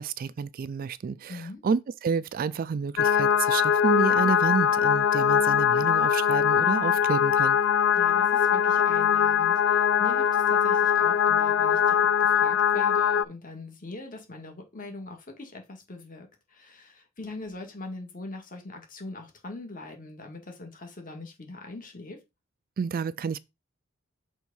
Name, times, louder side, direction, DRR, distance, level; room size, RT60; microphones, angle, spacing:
voice 1, 0.0-7.6 22.8-23.4, right 5 dB, 45° right, 0.3 m, -30 dB
voice 2, 1.3-1.6 7.9-22.2, left 2 dB, 40° left, 1.8 m, -41 dB
sound 1, 3.0-13.2, left 8 dB, 60° left, 0.3 m, -22 dB
6.2 x 3.5 x 5.5 m
head